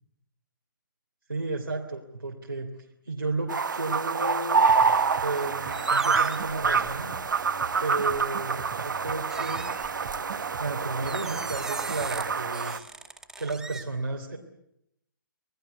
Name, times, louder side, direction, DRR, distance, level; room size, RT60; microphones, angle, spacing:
voice 1, 1.3-2.7 3.1-4.7 5.2-7.1 7.8-9.7 10.6-12.8 13.4-14.4, right 3 dB, 85° right, 0 dB, 3.3 m, -33 dB
sound 1, 3.5-12.8, right 5 dB, 65° right, 1.3 m, -27 dB
sound 2, 4.7-12.5, right 6 dB, 45° right, 1.6 m, -43 dB
sound 3, 5.0-5.4 5.7-7.2 8.1-8.3 9.3-10.4 11.1-12.2 12.5-13.8, right 3 dB, 5° right, 2.2 m, -41 dB
27.5 x 19.5 x 8.3 m, 0.79 s
figure-of-eight pair, 130°, 11 cm